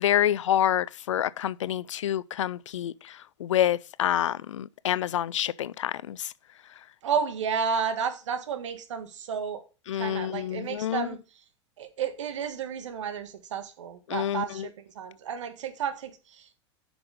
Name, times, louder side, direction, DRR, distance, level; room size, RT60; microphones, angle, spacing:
voice 1, 0.0-6.3 9.9-11.1 14.1-14.7, left 11 dB, 85° left, 0.4 m, -27 dB
voice 2, 7.0-9.6 9.9-11.2 11.8-16.6, right 6 dB, 80° right, 1.6 m, -32 dB
7.9 x 6.1 x 5.0 m
hypercardioid pair, 100°, 15 cm